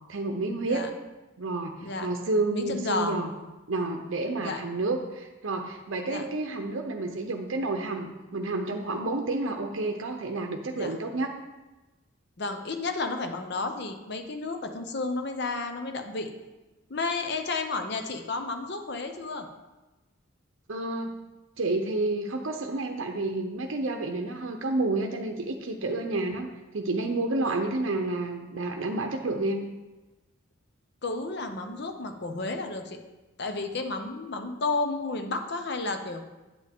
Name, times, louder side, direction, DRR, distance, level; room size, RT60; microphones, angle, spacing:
voice 1, 0.1-0.8 1.4-1.7 2.0-3.3 3.7-11.3 20.7-21.1 21.6-29.6, right 2 dB, 65° right, 3 dB, 0.7 m, -30 dB
voice 2, 2.5-3.2 4.4-4.6 6.1-6.2 10.8-11.0 12.4-16.3 16.9-19.5 27.4-27.6 31.0-33.0 33.4-36.2, left 3 dB, 50° left, 6 dB, 0.9 m, -32 dB
8.8 x 8.1 x 3.6 m, 1.1 s
head